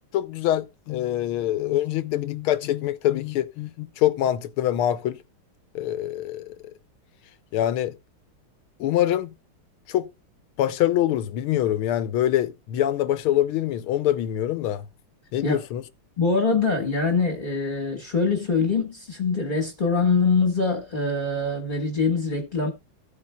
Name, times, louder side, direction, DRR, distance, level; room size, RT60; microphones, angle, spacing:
voice 1, 0.1-5.2 5.7-6.7 7.5-8.0 8.8-9.3 9.9-10.1 10.6-14.8 15.3-15.8, left 12 dB, 80° left, 1.5 m, -24 dB
voice 2, 16.2-22.7, left 4 dB, 25° left, 1.4 m, -23 dB
15.5 x 8.4 x 2.2 m
omnidirectional pair, 2.4 m